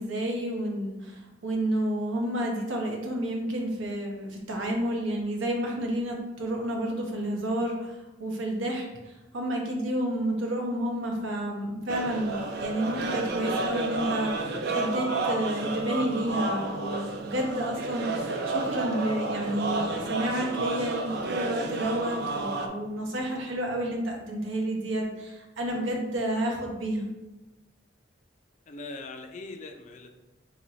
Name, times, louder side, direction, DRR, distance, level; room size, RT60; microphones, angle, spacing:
voice 1, 0.0-27.1, right 1 dB, 90° right, 1 dB, 0.8 m, -30 dB
sound 1, 11.9-22.7, right 3 dB, 60° right, 0.5 m, -31 dB
voice 2, 28.7-30.1, left 3 dB, 40° left, 5 dB, 0.4 m, -41 dB
3.1 x 2.9 x 4.1 m, 1.0 s
head